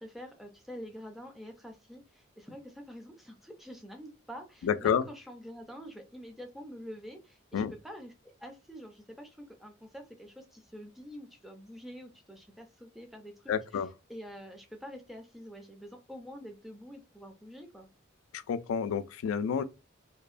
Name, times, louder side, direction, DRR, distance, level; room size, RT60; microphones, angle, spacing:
voice 1, 0.0-17.9, equal, ahead, 0.4 m, -47 dB
voice 2, 4.6-5.0 7.5-7.7 13.5-13.9 18.3-19.6, left 7 dB, 90° left, 0.3 m, -29 dB
2.7 x 2.0 x 2.4 m
head